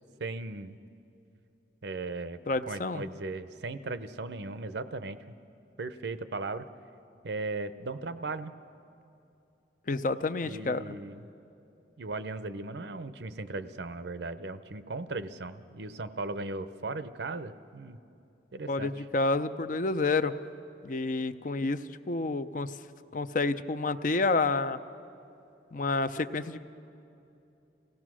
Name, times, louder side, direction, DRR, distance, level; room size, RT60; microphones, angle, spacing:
voice 1, 0.2-0.8 1.8-2.4 2.7-5.3 5.8-6.7 7.2-8.5 10.4-11.3 12.0-18.0 18.5-18.9, right 3 dB, 70° right, 13 dB, 0.7 m, -37 dB
voice 2, 2.5-3.0 9.9-11.0 18.7-20.3 20.8-21.8 22.1-22.8 23.1-24.8 25.7-26.6, left 3 dB, 45° left, 11 dB, 0.5 m, -29 dB
27.0 x 17.0 x 6.2 m, 2.8 s
head